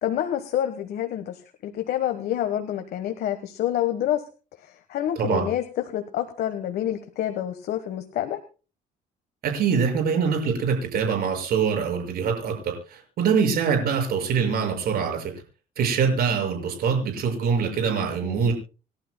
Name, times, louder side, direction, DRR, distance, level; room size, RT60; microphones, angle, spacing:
voice 1, 0.0-4.2 4.6-8.4 18.2-18.5, left 11 dB, 65° left, 8 dB, 1.4 m, -28 dB
voice 2, 9.4-15.3 15.8-18.5, right 6 dB, 65° right, 3 dB, 6.3 m, -24 dB
28.0 x 12.0 x 2.2 m, 0.34 s
cardioid pair, 110°, 17 cm